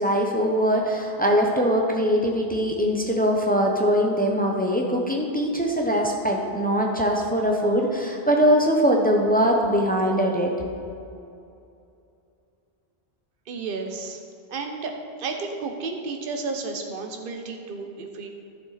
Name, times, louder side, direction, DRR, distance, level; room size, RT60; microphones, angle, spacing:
voice 1, 0.0-10.5, equal, 10° left, 0 dB, 0.8 m, -22 dB
voice 2, 13.5-14.2 14.5-14.9 15.2-18.3, right 4 dB, 60° right, 3 dB, 1.0 m, -32 dB
12.0 x 7.0 x 4.1 m, 2.6 s
omnidirectional pair, 1.1 m